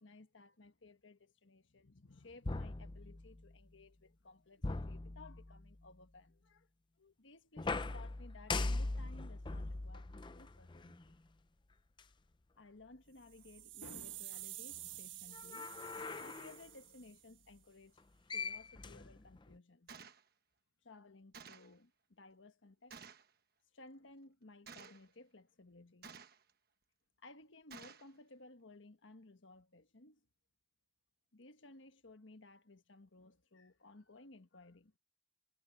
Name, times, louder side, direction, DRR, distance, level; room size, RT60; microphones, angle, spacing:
voice 1, 0.0-6.7 7.0-11.2 12.6-15.9 16.2-18.0 18.3-19.9 20.8-23.0 23.7-26.2 27.2-30.2 31.3-34.9, left 2 dB, 75° left, 1.4 m, -58 dB
sound 1, 2.4-3.5 4.6-5.8 7.6-11.1 12.0-12.1 15.3-16.6 18.0-18.1 18.3-19.6, left 3 dB, 25° left, 0.5 m, -41 dB
sound 2, 13.2-17.4, right 15 dB, 80° right, 1.2 m, -50 dB
Gunshot gunfire, 19.9-20.2 21.3-21.7 22.9-23.3 24.7-25.1 26.0-26.5 27.7-28.1, right 6 dB, 50° right, 1.2 m, -53 dB
head